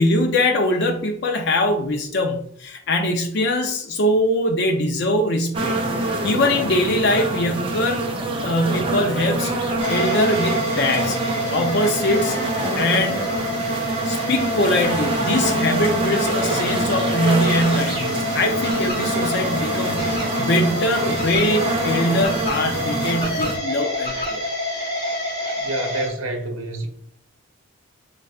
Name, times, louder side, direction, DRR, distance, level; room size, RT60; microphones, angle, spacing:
voice 1, 0.0-8.0 8.4-9.6 9.9-11.2 11.5-12.4 12.7-13.3 14.1-24.4, left 1 dB, 55° left, 0.5 m, -22 dB
sound 1, 5.5-23.6, right 1 dB, 25° right, 0.6 m, -25 dB
sound 2, 9.8-26.1, equal, 25° left, 1.6 m, -28 dB
voice 2, 25.6-26.9, right 2 dB, 70° right, 1.0 m, -28 dB
4.4 x 3.9 x 2.3 m
head